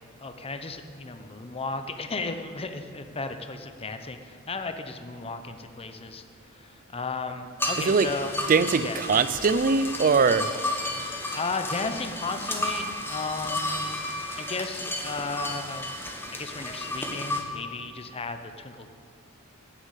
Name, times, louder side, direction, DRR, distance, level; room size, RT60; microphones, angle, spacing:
voice 1, 0.2-6.2 6.5-8.4 8.8-9.0 11.3-16.0 16.3-18.9, left 3 dB, 25° left, 7 dB, 0.7 m, -35 dB
sound 1, 7.6-17.4, left 1 dB, 10° left, 1.3 m, -32 dB
voice 2, 8.5-10.5, right 5 dB, 40° right, 14 dB, 0.4 m, -21 dB
12.5 x 7.2 x 8.2 m, 2.3 s
head